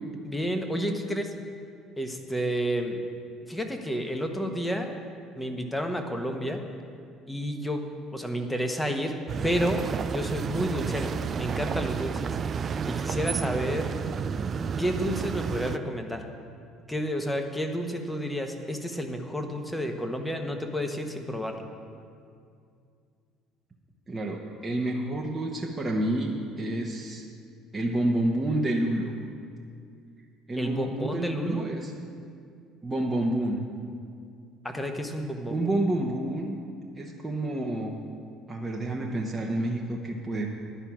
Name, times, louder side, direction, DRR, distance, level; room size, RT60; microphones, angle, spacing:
voice 1, 0.2-1.3 2.0-3.0 3.5-4.9 5.4-6.6 7.3-7.9 8.1-9.2 9.4-9.8 10.1-11.1 11.4-12.4 12.8-13.9 14.8-16.2 16.9-21.7 30.6-31.7 34.6-35.7, equal, 5° left, 4 dB, 1.3 m, -30 dB
sound 1, 9.3-15.8, right 6 dB, 40° right, 0.4 m, -31 dB
voice 2, 24.1-27.2 27.7-29.1 30.5-31.9 32.8-33.6 35.5-36.6 37.0-37.9 38.5-40.5, right 1 dB, 20° right, -1 dB, 1.1 m, -29 dB
11.0 x 5.7 x 8.6 m, 2.3 s
figure-of-eight pair, 60°, 0 cm